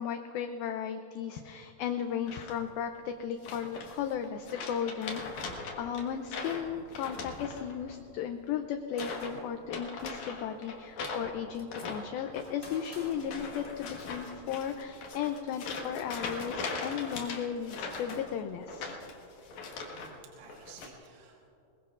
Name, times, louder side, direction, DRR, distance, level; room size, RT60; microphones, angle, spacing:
voice 1, 0.0-18.9, left 8 dB, 80° left, 6 dB, 2.2 m, -35 dB
sound 1, 2.3-2.8 3.4-4.1 4.4-8.5 8.9-9.4 9.6-20.1 20.4-20.9, left 3 dB, 55° left, 2.3 m, -40 dB
Gunshot gunfire, 9.0-9.6 10.8-10.9 11.1-11.9 12.6-14.1, left 2 dB, 30° left, 0.9 m, -49 dB
voice 2, 19.9-21.5, right 6 dB, 65° right, -2 dB, 3.2 m, -54 dB
21.5 x 21.5 x 2.5 m, 2.8 s
omnidirectional pair, 4.8 m